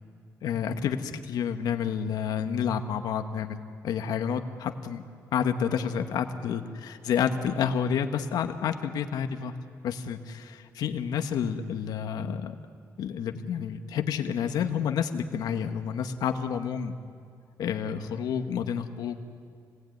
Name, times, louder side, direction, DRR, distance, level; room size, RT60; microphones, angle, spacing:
voice 1, 0.4-5.0 5.3-9.5 9.8-12.5 13.0-16.9 17.6-19.2, left 7 dB, 80° left, 7 dB, 1.5 m, -29 dB
28.0 x 19.5 x 9.4 m, 2.2 s
wide cardioid pair, 170°, 7 cm